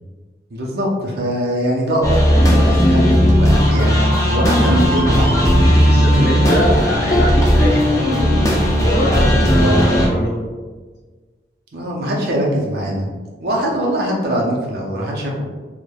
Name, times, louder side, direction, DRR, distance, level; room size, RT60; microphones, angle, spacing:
voice 1, 0.5-5.5 9.5-10.1 11.7-13.1 13.4-15.4, right 1 dB, 60° right, -2 dB, 0.5 m, -22 dB
sound 1, 2.0-10.1, equal, 20° left, 0.4 m, -15 dB
voice 2, 5.8-8.0 8.8-10.4, equal, 65° left, -5 dB, 0.8 m, -23 dB
3.1 x 2.1 x 2.2 m, 1.4 s
head